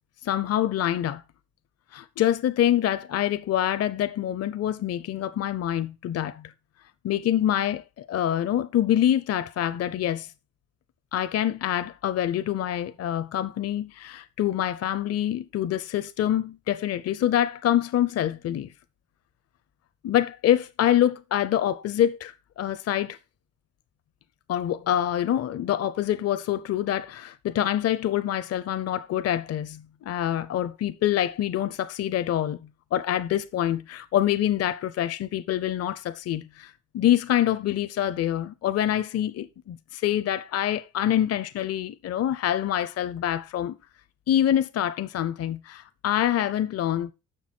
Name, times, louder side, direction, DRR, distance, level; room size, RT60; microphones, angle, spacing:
voice 1, 0.2-1.2 1.9-6.5 7.0-10.3 11.1-18.7 20.0-23.2 24.5-32.6 32.9-43.8 44.3-47.1, left 11 dB, 55° left, 0.6 m, -26 dB
6.9 x 6.2 x 4.4 m
cardioid pair, 90°, 30 cm